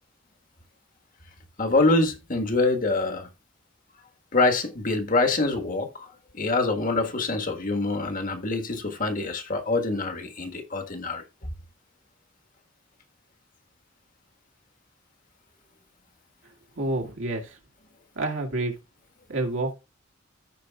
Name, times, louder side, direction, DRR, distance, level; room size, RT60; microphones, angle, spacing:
voice 1, 1.6-3.3 4.3-6.1 6.3-11.2, left 3 dB, 45° left, 1.5 m, -25 dB
voice 2, 16.8-17.5 18.2-18.7 19.3-19.7, right 2 dB, 80° right, 2.1 m, -28 dB
14.5 x 5.1 x 2.3 m
head